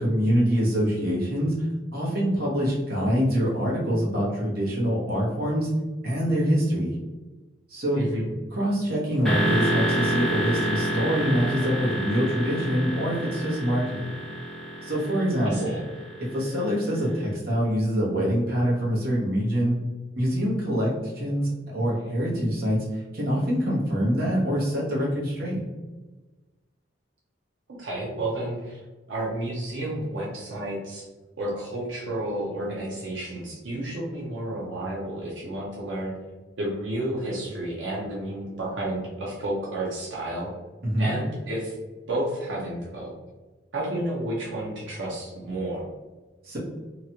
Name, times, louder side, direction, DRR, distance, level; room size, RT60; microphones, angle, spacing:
voice 1, 0.0-1.7 1.9-5.7 6.0-7.0 7.7-8.0 8.5-14.1 14.8-15.8 16.2-19.8 20.2-25.6 40.8-41.1 46.4-46.6, equal, 55° right, -6 dB, 1.1 m, -25 dB
voice 2, 7.9-8.3 15.4-15.8 27.8-31.1 31.4-36.2 36.6-40.5 41.0-41.8 42.1-43.1 43.7-45.8, right 1 dB, 90° right, -4 dB, 0.7 m, -31 dB
sound 1, 9.2-17.0, right 1 dB, ahead, 0.8 m, -29 dB
2.9 x 2.4 x 2.9 m, 1.2 s
head